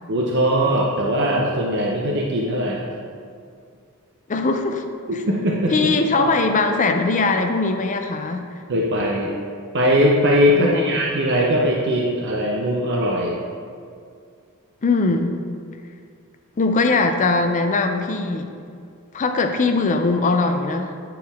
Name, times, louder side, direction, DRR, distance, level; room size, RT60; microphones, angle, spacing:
voice 1, 0.1-2.8 5.1-5.7 6.1-6.3 8.7-9.3 9.7-13.4, equal, 55° right, -3 dB, 0.7 m, -20 dB
voice 2, 4.3-4.8 5.1-5.2 5.7-8.5 10.5-11.0 14.8-15.4 16.6-18.5 19.1-21.0, left 3 dB, 35° left, 6 dB, 0.4 m, -21 dB
9.1 x 4.6 x 3.5 m, 2.3 s
head